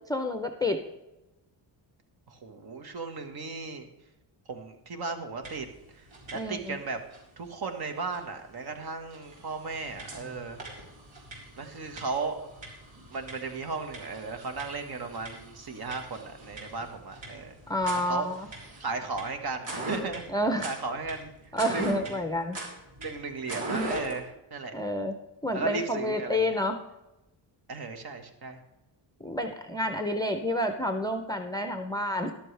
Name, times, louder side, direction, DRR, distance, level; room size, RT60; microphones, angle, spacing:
voice 1, 0.1-0.8 6.3-6.8 17.7-18.5 20.3-20.7 21.5-22.6 24.7-25.1 25.4-26.8 29.2-32.3, left 1 dB, 10° left, 5 dB, 0.6 m, -29 dB
voice 2, 2.3-3.9 4.5-5.7 5.9-6.0 6.3-7.0 7.4-10.6 11.6-12.5 13.1-17.5 17.9-18.3 18.8-20.3 20.6-21.3 21.7-22.2 23.0-24.7 25.5-26.5 27.7-28.6, right 4 dB, 55° right, 6 dB, 1.5 m, -35 dB
sound 1, 5.4-5.8 6.0-6.7 7.1-7.2 8.1-8.2 8.7-8.8 9.1-24.2, right 2 dB, 85° right, 3.9 m, -40 dB
13.0 x 11.5 x 3.3 m, 0.95 s
wide cardioid pair, 175°, 45 cm